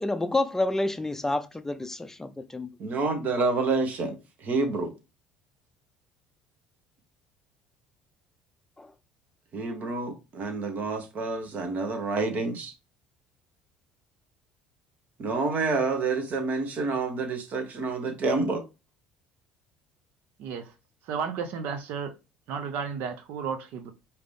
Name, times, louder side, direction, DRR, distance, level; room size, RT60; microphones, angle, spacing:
voice 1, 0.0-2.7 8.8-8.9, left 2 dB, 10° left, 0.5 m, -29 dB
voice 2, 2.8-4.9 9.5-12.7 15.2-18.6, right 3 dB, 50° right, 1.3 m, -28 dB
voice 3, 20.4-20.7 21.0-22.1 22.5-23.9, right 6 dB, 65° right, 0.7 m, -33 dB
5.0 x 2.9 x 3.4 m
hypercardioid pair, 65°, 3 cm